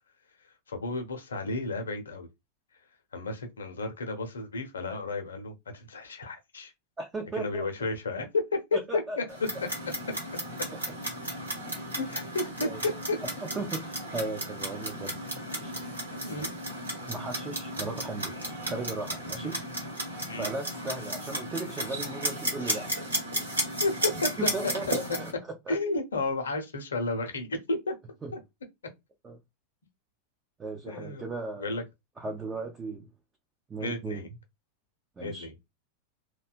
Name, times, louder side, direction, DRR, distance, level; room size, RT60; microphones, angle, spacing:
voice 1, 0.7-2.3 3.1-6.7 7.4-8.6 8.9-9.2 11.9-13.2 16.2-16.5 19.4-19.6 20.3-20.5 23.8-24.7 25.7-27.9 28.3-28.4 30.9-31.2 31.6-31.8 33.8-34.3 35.2-35.5, left 3 dB, 70° left, 0.6 m, -32 dB
voice 2, 7.0-7.7 8.7-9.2 12.6-12.8 13.2-15.2 15.6-15.8 16.4-16.5 17.1-19.6 20.3-22.9 24.4-25.3 25.7-25.8 28.2-28.3 29.2-29.4 30.6-31.8 32.2-33.1 33.7-34.3 35.2-35.5, right 3 dB, 15° right, 0.4 m, -36 dB
Clock, 9.3-25.3, right 1 dB, 80° right, 1.1 m, -34 dB
2.7 x 2.2 x 2.4 m
figure-of-eight pair, 90°, 0 cm